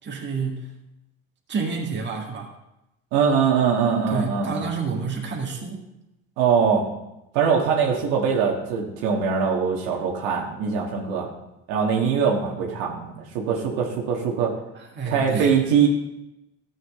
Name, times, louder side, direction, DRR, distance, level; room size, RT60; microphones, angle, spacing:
voice 1, 0.0-0.7 1.5-2.5 4.1-5.8 12.6-12.7 14.7-15.6, right 5 dB, 35° right, -1 dB, 1.9 m, -29 dB
voice 2, 3.1-4.7 6.4-6.8 7.3-11.3 11.7-14.5 15.0-15.9, right 6 dB, 80° right, -1 dB, 1.6 m, -22 dB
13.0 x 7.7 x 3.7 m, 0.91 s
supercardioid pair, 100°, 33 cm